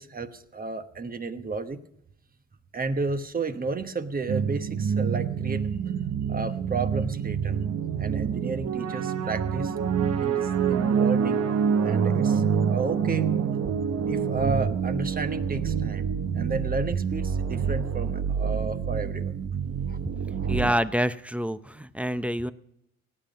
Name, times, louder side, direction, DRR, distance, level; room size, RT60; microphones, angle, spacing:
voice 1, 0.0-1.8 2.7-5.6 6.3-7.6 8.0-9.7 10.2-11.4 11.8-12.4 12.7-13.3 14.1-16.1 16.3-19.3 19.9-20.0 20.4-20.5, right 4 dB, 30° right, 9 dB, 1.1 m, -32 dB
sound 1, 4.3-20.7, right 7 dB, 55° right, 1.0 m, -27 dB
voice 2, 20.5-22.5, equal, 5° right, 13 dB, 0.6 m, -27 dB
17.5 x 9.0 x 5.2 m, 0.80 s
cardioid pair, 90°, 30 cm